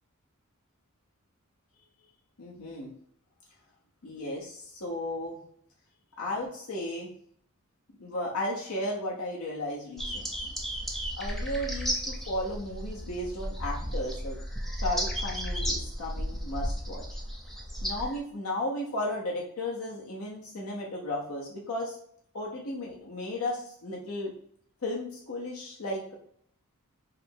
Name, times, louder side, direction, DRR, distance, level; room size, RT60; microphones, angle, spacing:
voice 1, 2.4-2.9 4.0-5.4 6.2-7.1 8.0-10.3 11.2-14.4 14.8-17.0 17.8-22.0 22.3-24.3 24.8-26.1, left 1 dB, 75° left, -3 dB, 0.9 m, -34 dB
sound 1, 10.0-18.2, equal, ahead, 0.6 m, -34 dB
5.0 x 2.1 x 4.5 m, 0.64 s
head